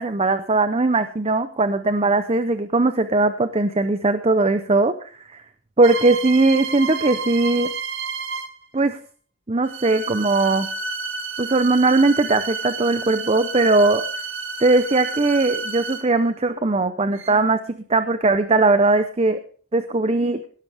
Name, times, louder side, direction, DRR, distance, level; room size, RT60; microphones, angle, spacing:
voice 1, 0.0-5.4 5.8-7.7 8.7-9.0 9.5-10.7 11.4-14.0 14.6-19.4 19.7-20.4, right 3 dB, 25° right, 10 dB, 0.6 m, -19 dB
sound 1, 5.8-8.6 9.6-16.2 17.1-17.3, right 4 dB, 55° right, 1.7 m, -31 dB
18.0 x 12.5 x 3.4 m, 0.44 s
head